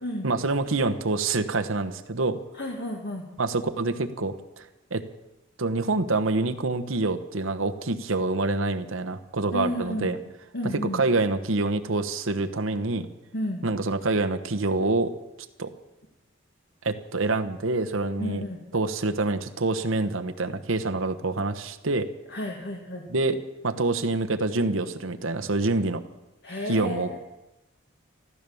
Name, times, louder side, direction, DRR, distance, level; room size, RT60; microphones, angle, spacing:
voice 1, 0.2-2.4 3.4-4.6 4.9-5.0 5.6-10.2 10.6-13.1 13.6-15.1 15.6-15.7 16.8-18.4 18.7-22.1 23.1-23.4 23.6-26.0 26.7-27.2, right 3 dB, 80° right, 7 dB, 1.1 m, -26 dB
voice 2, 2.6-3.2 9.5-10.1 10.5-11.0 13.3-13.6 18.2-18.6 22.3-23.0 26.4-27.2, left 1 dB, 55° left, 1 dB, 1.7 m, -32 dB
14.0 x 14.0 x 7.0 m, 1.0 s
head